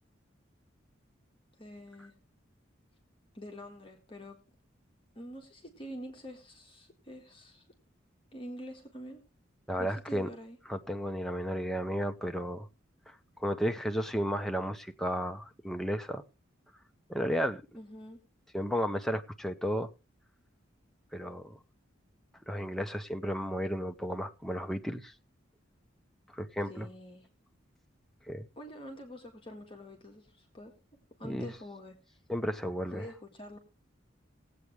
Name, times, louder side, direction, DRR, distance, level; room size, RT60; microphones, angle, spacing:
voice 1, 1.6-2.1 3.3-4.4 5.2-7.6 8.3-9.2 9.8-10.6 17.7-18.2 26.7-27.3 28.6-30.7 31.2-32.0 32.9-33.6, equal, 25° left, 1.7 m, -46 dB
voice 2, 9.7-10.3 10.7-12.7 13.1-16.2 17.1-17.6 18.5-19.9 21.1-21.5 22.5-25.1 26.3-26.9 28.3-28.5 31.2-31.5 32.3-33.1, equal, ahead, 0.6 m, -33 dB
19.5 x 8.2 x 3.1 m
head